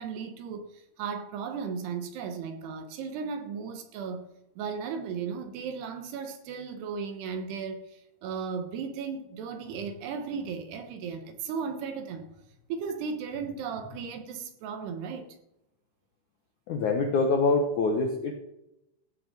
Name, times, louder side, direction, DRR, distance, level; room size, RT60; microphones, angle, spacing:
voice 1, 0.0-4.3 4.6-12.3 12.7-15.3, right 6 dB, 70° right, 3.2 m, -36 dB
voice 2, 16.7-18.3, left 3 dB, 70° left, 1.8 m, -25 dB
15.5 x 6.1 x 7.5 m
omnidirectional pair, 5.1 m